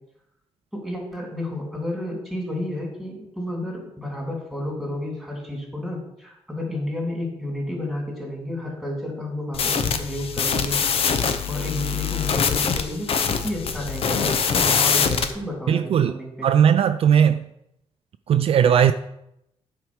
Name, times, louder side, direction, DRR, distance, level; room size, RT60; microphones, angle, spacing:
voice 1, 0.7-11.1 11.5-16.5, left 1 dB, ahead, 3.1 m, -31 dB
sound 1, 9.5-15.3, left 6 dB, 60° left, 0.8 m, -23 dB
voice 2, 15.7-17.4 18.3-18.9, right 8 dB, 60° right, 0.4 m, -18 dB
9.2 x 4.6 x 6.2 m
cardioid pair, 110°, 11 cm